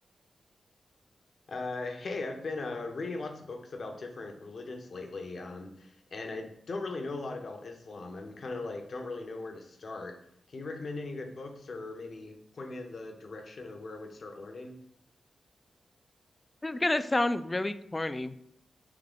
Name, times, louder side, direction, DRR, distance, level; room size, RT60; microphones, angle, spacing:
voice 1, 1.5-10.1 10.5-14.7, left 3 dB, 60° left, 3 dB, 0.7 m, -39 dB
voice 2, 16.6-18.4, left 2 dB, 25° left, 11 dB, 0.3 m, -29 dB
3.6 x 3.3 x 3.6 m, 0.71 s
cardioid pair, 65°, 0 cm